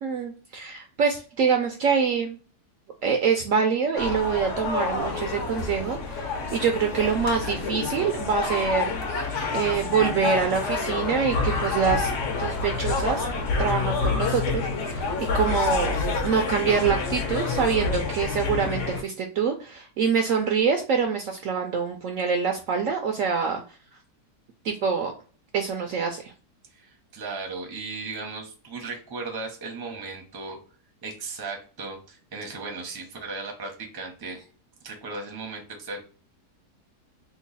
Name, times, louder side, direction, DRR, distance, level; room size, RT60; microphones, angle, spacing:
voice 1, 0.0-2.4 3.0-8.9 9.5-12.1 12.4-13.3 13.6-16.0 16.2-23.6 24.6-25.1 25.5-26.3, right 6 dB, 65° right, 4 dB, 0.8 m, -25 dB
sound 1, 4.0-19.0, left 4 dB, 55° left, 1.0 m, -28 dB
voice 2, 26.7-30.6 31.0-34.4 34.8-36.0, right 3 dB, 20° right, 2 dB, 0.6 m, -36 dB
3.0 x 2.3 x 3.9 m, 0.38 s
omnidirectional pair, 1.7 m